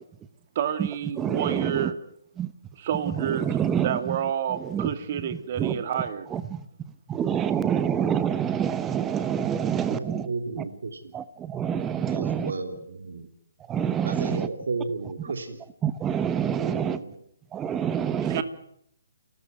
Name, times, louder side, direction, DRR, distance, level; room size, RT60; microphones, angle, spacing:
voice 1, 0.5-2.0 2.8-6.3 18.2-18.4, right 9 dB, 40° right, 10 dB, 2.6 m, -29 dB
voice 2, 1.2-1.9 2.4-2.5 3.4-3.9 4.7-4.9 5.6-5.7 6.3-6.6 7.1-10.3 11.1-12.5 13.7-14.5 15.8-17.0 17.5-18.4, right 8 dB, 15° right, 14 dB, 0.9 m, -26 dB
voice 3, 9.9-11.1 12.1-13.3 14.0-15.6 16.5-17.1, right 3 dB, 75° right, 5 dB, 3.4 m, -33 dB
29.0 x 13.5 x 9.4 m, 0.70 s
hypercardioid pair, 155°, 0 cm